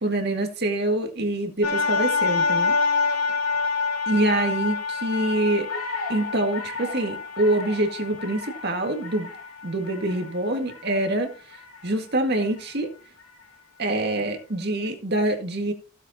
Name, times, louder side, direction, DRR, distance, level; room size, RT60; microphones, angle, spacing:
voice 1, 0.0-2.7 4.1-5.7 6.1-9.3 9.6-11.3 11.8-12.9 13.8-15.7, right 1 dB, 50° right, 2.0 m, -25 dB
sound 1, 1.6-11.8 12.4-12.5, left 4 dB, 80° left, 3.4 m, -27 dB
15.5 x 7.8 x 2.9 m
head